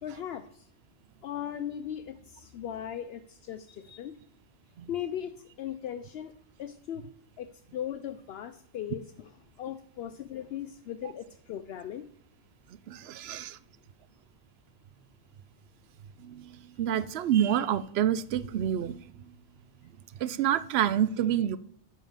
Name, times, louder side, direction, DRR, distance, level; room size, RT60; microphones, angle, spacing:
voice 1, 0.0-0.7 1.2-4.2 4.9-6.3 6.6-7.1 7.4-9.3 9.6-12.1, left 10 dB, 70° left, 11 dB, 0.8 m, -38 dB
voice 2, 12.9-13.6 16.2-19.2 20.2-21.6, right 10 dB, 75° right, 15 dB, 0.8 m, -28 dB
9.2 x 5.7 x 7.3 m, 0.62 s
omnidirectional pair, 1.1 m